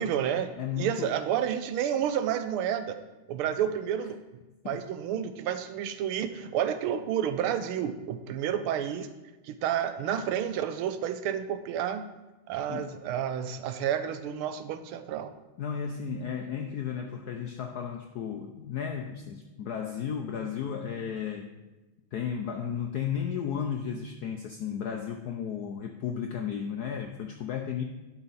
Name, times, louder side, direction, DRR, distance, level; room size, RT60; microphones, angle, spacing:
voice 1, 0.0-3.0 3.3-4.2 4.6-9.1 9.4-12.1 12.5-15.3, right 9 dB, 80° right, 10 dB, 1.5 m, -30 dB
voice 2, 0.6-1.1 4.6-4.8 12.7-12.9 15.6-21.5 22.1-27.8, left 7 dB, 80° left, 4 dB, 0.8 m, -34 dB
11.0 x 5.8 x 4.1 m, 1.1 s
omnidirectional pair, 2.4 m